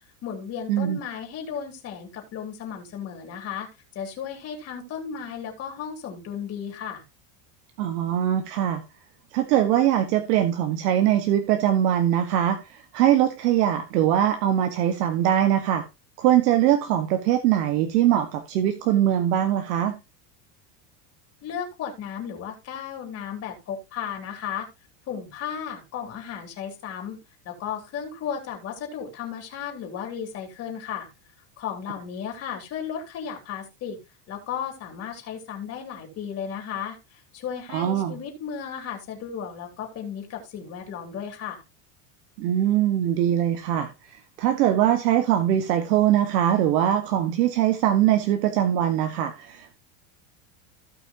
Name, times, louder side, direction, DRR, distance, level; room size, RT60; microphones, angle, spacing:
voice 1, 0.2-3.7 4.0-7.0 21.4-24.7 25.1-27.2 27.5-31.1 31.6-34.0 34.3-41.6, left 8 dB, 30° left, 3.5 m, -34 dB
voice 2, 7.8-8.8 9.3-15.8 16.2-19.9 37.7-38.2 42.4-49.8, right 11 dB, 70° right, 1.6 m, -22 dB
16.5 x 5.8 x 2.9 m
supercardioid pair, 175°, 49 cm